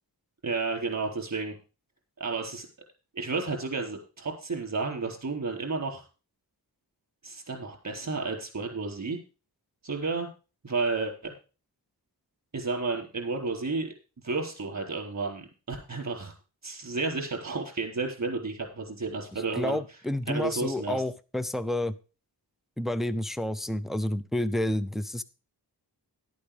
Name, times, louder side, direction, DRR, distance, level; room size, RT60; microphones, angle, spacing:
voice 1, 0.4-1.5 2.2-2.7 3.1-6.0 7.2-9.2 9.8-10.3 10.6-11.3 12.5-13.9 14.2-16.3 16.6-19.8 20.3-21.0, right 3 dB, 45° right, 2 dB, 4.1 m, -32 dB
voice 2, 19.6-21.9 22.8-25.2, left 1 dB, ahead, 14 dB, 0.6 m, -29 dB
12.0 x 8.5 x 5.1 m, 0.34 s
wide cardioid pair, 105°, 40 cm